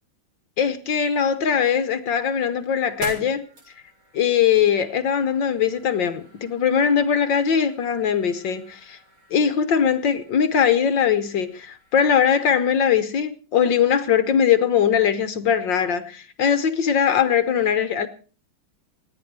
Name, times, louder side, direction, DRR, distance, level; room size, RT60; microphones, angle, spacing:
voice 1, 0.6-3.4 4.1-9.0 9.3-18.1, left 8 dB, 65° left, 1.6 m, -21 dB
sound 1, 1.3-12.3, right 1 dB, 80° right, 8.0 m, -46 dB
29.0 x 10.0 x 4.7 m
omnidirectional pair, 2.3 m